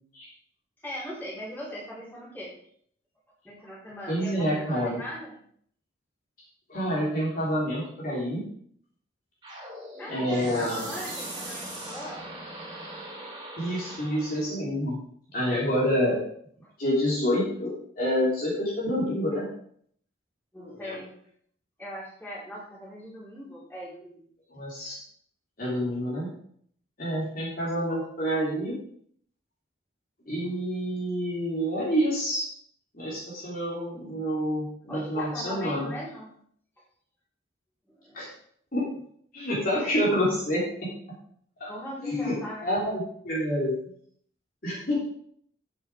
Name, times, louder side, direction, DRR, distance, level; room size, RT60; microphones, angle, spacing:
voice 1, 0.8-2.5 3.4-5.4 10.0-12.2 20.5-21.1 21.8-24.2 34.9-36.3 37.9-38.3 41.7-43.1, equal, 10° left, -8 dB, 4.5 m, -39 dB
voice 2, 4.1-5.0 6.7-8.4 10.1-10.8 13.6-15.0 15.3-16.2 16.8-19.4 20.6-21.0 24.5-25.0 25.6-26.3 27.0-28.8 30.3-32.4 32.9-35.9 38.1-38.3 38.7-38.8 39.3-40.9 41.6-41.7 42.0-42.3 42.6-43.8 44.6-45.0, equal, 45° left, -6 dB, 3.3 m, -28 dB
sound 1, 9.4-14.5, right 1 dB, 20° right, 3.3 m, -40 dB
9.7 x 8.1 x 4.9 m, 0.63 s
head